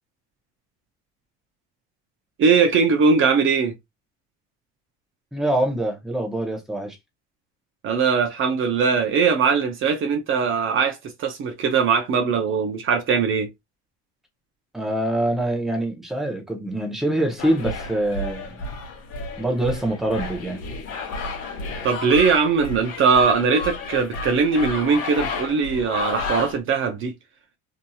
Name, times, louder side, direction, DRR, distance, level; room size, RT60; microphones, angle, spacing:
voice 1, 2.4-3.7 7.8-13.5 21.8-27.1, right 5 dB, 45° right, 0.6 m, -20 dB
voice 2, 5.3-7.0 14.7-18.5 19.4-20.6, right 1 dB, ahead, 0.8 m, -24 dB
sound 1, 17.4-26.6, left 3 dB, 55° left, 1.0 m, -32 dB
2.8 x 2.7 x 2.3 m
cardioid pair, 120°, 30 cm